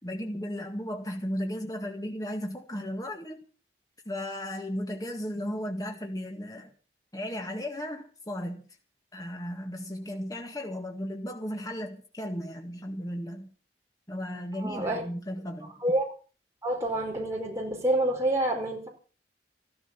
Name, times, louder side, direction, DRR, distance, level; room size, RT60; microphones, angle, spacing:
voice 1, 0.0-3.4 4.1-6.7 7.1-8.6 9.1-13.5 14.1-15.8, equal, 20° left, 1.9 m, -35 dB
voice 2, 14.6-15.0 15.8-16.1 16.6-18.9, right 1 dB, 15° right, 4.9 m, -27 dB
15.0 x 13.5 x 5.9 m
head